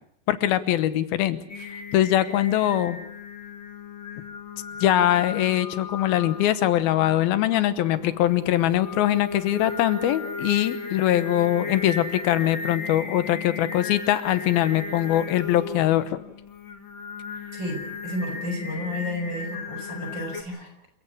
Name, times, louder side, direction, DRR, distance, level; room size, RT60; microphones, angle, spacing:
voice 1, 0.3-1.4 1.9-3.0 4.8-16.2, left 12 dB, 85° left, 13 dB, 3.0 m, -22 dB
Singing, 1.5-20.4, left 5 dB, 45° left, 1.8 m, -36 dB
voice 2, 17.5-20.7, left 1 dB, 30° right, 4 dB, 6.4 m, -32 dB
28.0 x 16.0 x 8.3 m, 0.75 s
omnidirectional pair, 4.2 m